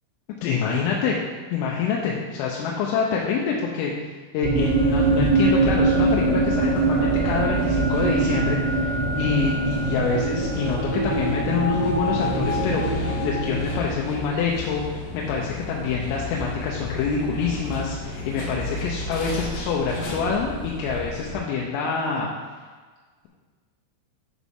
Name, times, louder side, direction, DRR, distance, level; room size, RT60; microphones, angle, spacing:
voice 1, 0.4-1.2 1.5-3.9 4.3-22.3, left 5 dB, 85° left, -2 dB, 3.4 m, -26 dB
sound 1, 4.4-14.2, right 3 dB, 85° right, 3.6 m, -23 dB
sound 2, 4.5-21.4, left 2 dB, 70° left, 2.9 m, -33 dB
10.0 x 6.1 x 3.6 m, 1.5 s
omnidirectional pair, 5.8 m